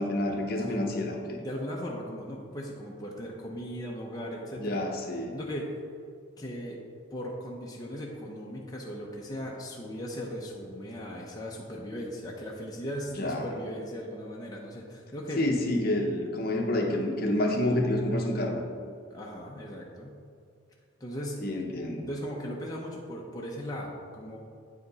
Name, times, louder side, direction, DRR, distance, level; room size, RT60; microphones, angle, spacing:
voice 1, 0.0-1.4 4.6-5.3 13.2-13.4 15.4-18.6 21.4-22.1, left 1 dB, 45° left, 1 dB, 0.8 m, -28 dB
voice 2, 1.4-4.8 5.3-5.7 6.4-6.8 7.1-15.4 19.1-20.2 21.0-21.4 22.1-24.4, equal, 20° left, -3 dB, 0.7 m, -38 dB
8.7 x 5.1 x 4.0 m, 2.2 s
head